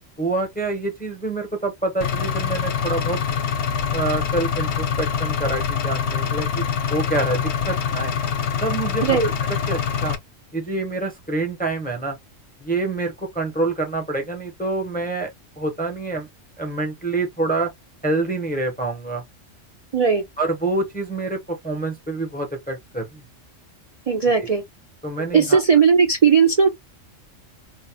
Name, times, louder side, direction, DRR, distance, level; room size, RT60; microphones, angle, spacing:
voice 1, 0.2-3.2 3.9-6.6 6.9-8.1 8.6-9.2 9.5-10.2 10.5-12.2 12.6-15.3 15.6-16.3 16.6-17.7 18.0-19.2 20.4-23.2 24.4-24.5 25.0-25.6, right 2 dB, 15° left, 0.4 m, -26 dB
Engine, 2.0-10.2, left 7 dB, 65° left, 0.9 m, -25 dB
voice 2, 19.9-20.2 24.1-24.6 25.3-26.7, right 6 dB, 75° right, 0.3 m, -17 dB
2.8 x 2.0 x 2.7 m
omnidirectional pair, 1.3 m